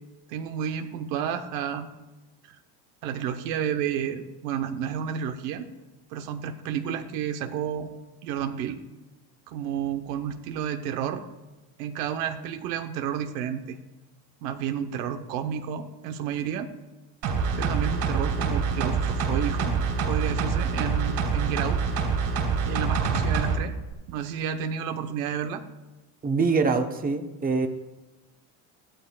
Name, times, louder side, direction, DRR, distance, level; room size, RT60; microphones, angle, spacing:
voice 1, 0.3-1.9 3.0-5.7 6.1-7.9 8.2-8.8 9.5-11.2 11.8-13.8 14.4-16.7 17.5-19.7 20.1-21.8 22.6-23.7 24.1-25.6, right 8 dB, 80° right, 7 dB, 1.1 m, -31 dB
sound 1, 17.2-23.6 23.9-24.0, right 5 dB, 55° right, 3.7 m, -26 dB
voice 2, 26.2-27.7, right 4 dB, 20° right, 5 dB, 1.0 m, -24 dB
14.5 x 12.5 x 2.4 m, 1.1 s
supercardioid pair, 100°, 48 cm